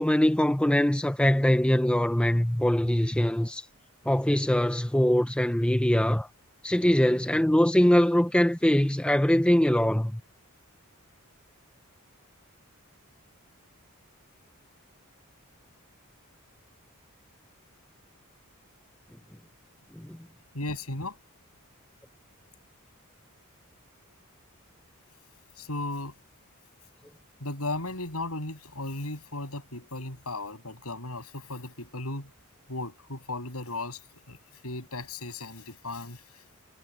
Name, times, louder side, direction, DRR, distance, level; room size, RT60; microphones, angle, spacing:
voice 1, 0.0-3.7 4.1-6.3 6.6-10.2 19.9-20.2, equal, 5° left, 0.6 m, -23 dB
voice 2, 20.5-21.2 25.6-26.1 27.4-32.3 32.7-34.0 34.3-34.4 34.6-36.2, left 2 dB, 80° left, 7.5 m, -35 dB
head